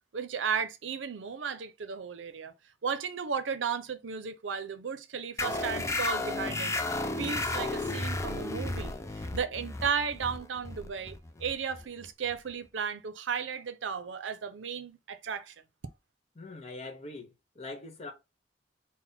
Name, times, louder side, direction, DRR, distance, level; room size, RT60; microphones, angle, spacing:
voice 1, 0.1-2.5 2.8-6.7 7.2-15.5, right 6 dB, 90° right, 0.5 m, -34 dB
sound 1, 5.4-12.5, left 2 dB, 15° left, 0.4 m, -33 dB
voice 2, 16.4-18.1, left 2 dB, 35° left, 1.0 m, -43 dB
4.0 x 2.1 x 4.1 m
head